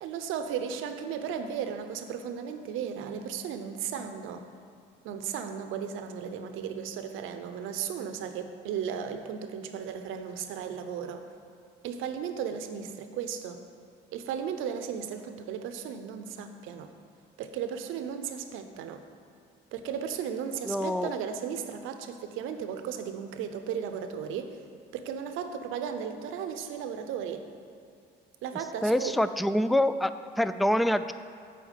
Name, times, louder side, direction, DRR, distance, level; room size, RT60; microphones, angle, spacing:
voice 1, 0.0-4.4 5.0-11.2 11.8-13.6 14.1-16.9 17.4-19.0 19.7-24.6 24.9-27.5 28.4-29.2, right 7 dB, 85° right, 7 dB, 0.7 m, -35 dB
voice 2, 20.6-21.1 28.8-31.1, left 1 dB, ahead, 12 dB, 0.3 m, -26 dB
8.3 x 4.5 x 7.3 m, 2.5 s
supercardioid pair, 70°, 20 cm